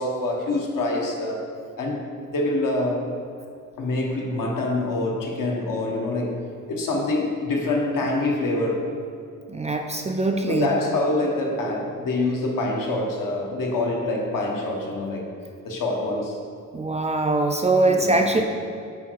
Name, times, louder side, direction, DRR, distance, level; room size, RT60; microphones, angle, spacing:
voice 1, 0.0-1.5 1.8-3.1 3.8-6.4 6.7-8.9 10.5-15.3 15.6-16.4 18.0-18.4, left 2 dB, 80° left, 0 dB, 1.3 m, -25 dB
voice 2, 9.5-10.7 16.7-18.4, right 2 dB, 20° right, 3 dB, 0.3 m, -22 dB
8.4 x 5.1 x 4.6 m, 2.4 s
wide cardioid pair, 175°, 33 cm